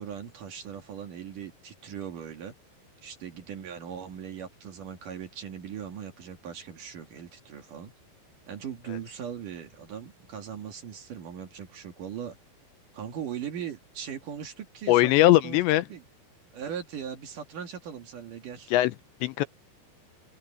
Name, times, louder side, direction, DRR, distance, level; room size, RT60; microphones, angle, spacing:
voice 1, 0.0-2.5 3.0-7.9 8.5-12.4 12.9-15.6 15.9-16.0 16.5-18.7, right 8 dB, 55° right, 3.0 m, -39 dB
voice 2, 14.9-15.9 18.7-19.0 19.2-19.5, left 16 dB, 85° left, 3.1 m, -20 dB
open air
omnidirectional pair, 5.2 m